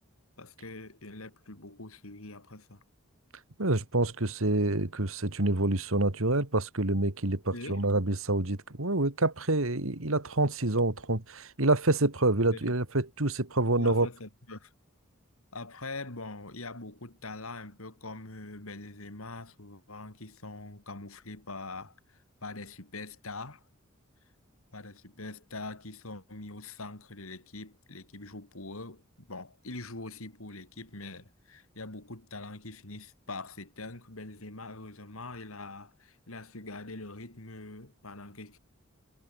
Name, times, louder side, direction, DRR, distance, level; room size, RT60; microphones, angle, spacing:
voice 1, 0.4-2.8 7.5-7.9 12.5-12.7 13.8-14.7 15.5-23.6 24.7-38.6, left 2 dB, 80° left, 3.4 m, -43 dB
voice 2, 3.6-14.1, right 2 dB, 75° right, 2.3 m, -27 dB
head